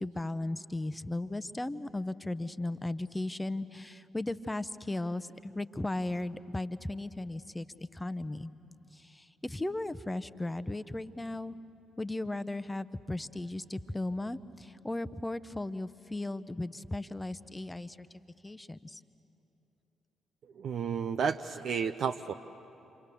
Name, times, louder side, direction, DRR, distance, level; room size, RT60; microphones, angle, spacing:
voice 1, 0.0-8.5 8.9-11.6 12.0-18.1 18.4-19.0, left 2 dB, 15° left, 14 dB, 0.8 m, -36 dB
voice 2, 20.6-22.3, right 6 dB, 55° right, 7 dB, 0.6 m, -32 dB
28.5 x 25.5 x 6.9 m, 3.0 s
figure-of-eight pair, 40°, 0 cm